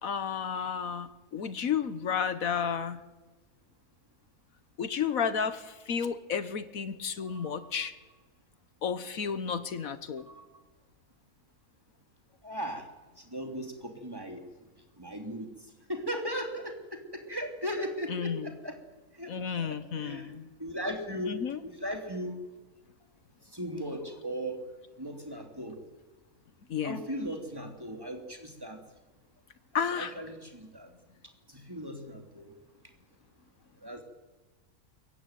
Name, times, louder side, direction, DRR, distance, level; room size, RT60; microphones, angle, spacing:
voice 1, 0.0-3.0 4.8-7.9 8.8-10.3 18.1-18.5 19.3-20.5 21.2-21.6 26.7-27.0 29.7-30.1, left 7 dB, 75° left, 12 dB, 1.6 m, -32 dB
voice 2, 12.4-12.9 13.2-14.4 15.0-15.5 15.9-18.7 19.1-20.3 20.6-22.4 23.5-24.6 25.0-25.8 26.8-28.8 29.7-30.9 31.5-32.5 33.8-34.0, equal, 15° right, 3 dB, 3.3 m, -37 dB
23.5 x 22.0 x 9.2 m, 1.2 s
omnidirectional pair, 1.5 m